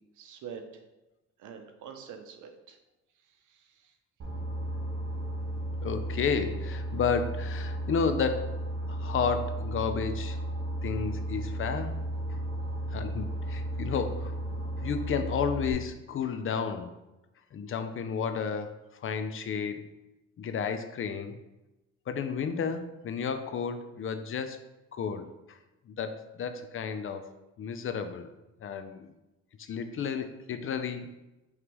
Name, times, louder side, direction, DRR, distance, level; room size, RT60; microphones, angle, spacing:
voice 1, 0.2-0.6 1.4-2.8 3.5-3.9, right 7 dB, 80° right, 6 dB, 0.7 m, -45 dB
Boat Water vehicle, 4.2-15.7, right 1 dB, 45° right, 1.1 m, -34 dB
voice 2, 5.8-8.6 8.9-10.4 10.8-12.0 12.3-12.4 12.9-14.3 14.8-16.9 17.5-19.9 20.4-21.4 22.1-24.6 24.9-25.6 25.9-27.3 27.6-28.3 28.6-29.1 29.6-31.1, left 6 dB, 45° left, 9 dB, 0.5 m, -32 dB
5.1 x 3.2 x 3.0 m, 1.0 s
cardioid pair, 90°, 30 cm